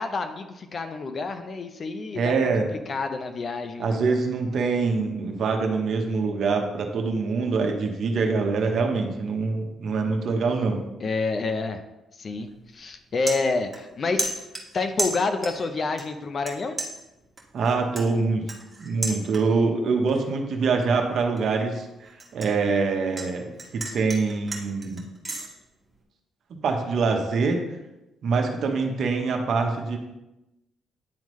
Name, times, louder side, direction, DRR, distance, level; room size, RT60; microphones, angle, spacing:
voice 1, 0.0-4.0 11.0-11.8 12.2-14.4 14.7-16.8, left 3 dB, 45° left, 7 dB, 0.7 m, -28 dB
voice 2, 2.1-2.7 3.8-10.8 17.5-18.4 18.8-21.8 22.3-25.0 26.5-27.6 28.2-30.0, right 4 dB, 65° right, 3 dB, 1.0 m, -24 dB
sound 1, 12.3-12.5 12.9-13.9 14.2-15.7 16.0-16.5 16.8-19.7 20.1-20.4 20.8-23.3 23.6-25.5, right 2 dB, 15° right, 1.6 m, -33 dB
10.5 x 3.7 x 3.1 m, 0.97 s
cardioid pair, 90°, 0 cm